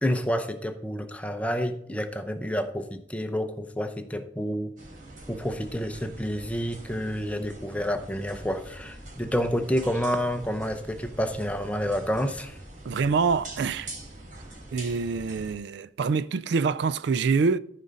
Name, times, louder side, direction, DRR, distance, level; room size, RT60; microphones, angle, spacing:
voice 1, 0.0-4.7 5.3-12.6, equal, 5° left, 0.7 m, -29 dB
sound 1, 4.8-15.5, right 1 dB, 45° right, 3.3 m, -44 dB
voice 2, 12.9-13.9 14.7-17.6, right 5 dB, 65° right, 0.4 m, -25 dB
14.0 x 5.1 x 4.1 m
head